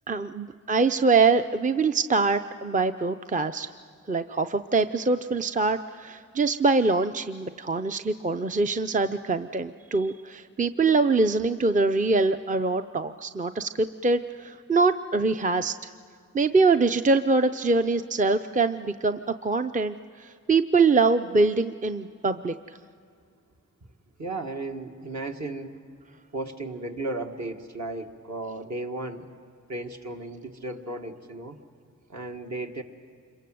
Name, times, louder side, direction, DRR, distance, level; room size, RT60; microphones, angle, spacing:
voice 1, 0.1-3.7 4.1-15.9 16.3-22.8, right 3 dB, 25° right, 9 dB, 0.5 m, -24 dB
voice 2, 24.2-25.8 26.3-29.3 29.7-31.6 32.1-32.8, right 2 dB, 60° right, 3 dB, 1.9 m, -35 dB
26.5 x 23.0 x 7.8 m, 2.3 s
wide cardioid pair, 80°, 32 cm